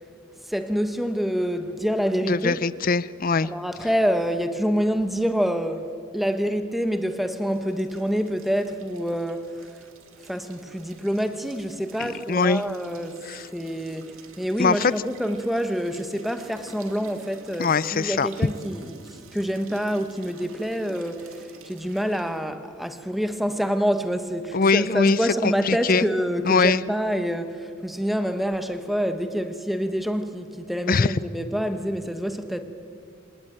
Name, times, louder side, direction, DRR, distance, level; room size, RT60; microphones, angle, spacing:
voice 1, 0.5-2.6 3.4-9.5 10.2-13.2 13.5-19.0 19.3-32.6, equal, ahead, 8 dB, 1.2 m, -27 dB
voice 2, 2.3-3.5 12.0-12.6 13.3-13.4 14.6-14.9 17.6-18.3 24.5-26.0 26.4-26.8 30.9-31.1, left 4 dB, 40° left, 18 dB, 0.5 m, -22 dB
sound 1, 7.3-22.4, right 4 dB, 80° right, 2.4 m, -49 dB
26.0 x 18.5 x 8.9 m, 2.3 s
head